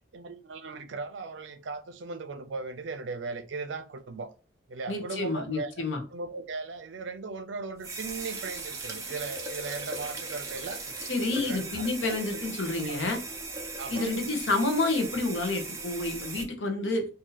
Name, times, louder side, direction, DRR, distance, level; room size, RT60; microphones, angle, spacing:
voice 1, 0.1-4.3 4.7-5.8 6.1-10.8 11.3-12.2 12.8-13.0 13.8-14.1, right 4 dB, 80° right, 0.5 m, -38 dB
voice 2, 4.9-6.0 11.1-13.2 13.9-17.1, left 2 dB, 80° left, 0.9 m, -29 dB
sound 1, 7.8-16.4, right 3 dB, 15° right, 0.6 m, -38 dB
2.7 x 2.7 x 3.9 m
head